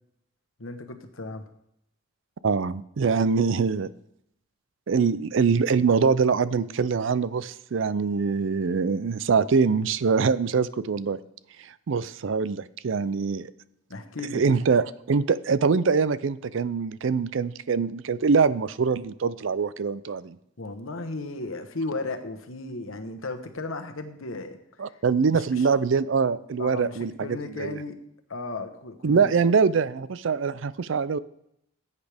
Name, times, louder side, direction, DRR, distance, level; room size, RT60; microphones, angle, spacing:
voice 1, 0.6-1.4 13.9-14.6 20.6-24.6 25.3-25.7 26.6-28.0 28.3-29.4, left 2 dB, 75° left, 7 dB, 1.2 m, -35 dB
voice 2, 2.4-3.9 4.9-11.2 11.6-13.5 14.3-20.4 24.8-27.8 29.0-31.2, right 5 dB, 65° right, 17 dB, 0.4 m, -24 dB
15.0 x 8.3 x 3.5 m, 0.76 s
head